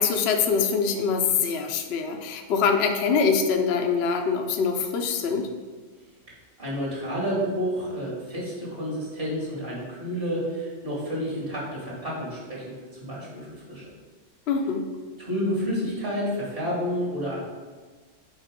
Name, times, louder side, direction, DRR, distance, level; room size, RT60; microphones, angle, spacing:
voice 1, 0.0-5.5 14.5-14.8, left 5 dB, 60° left, 4 dB, 0.9 m, -24 dB
voice 2, 6.6-12.8 13.0-13.9 15.2-17.4, equal, 50° right, -5 dB, 2.3 m, -30 dB
6.5 x 4.0 x 5.1 m, 1.4 s
omnidirectional pair, 1.3 m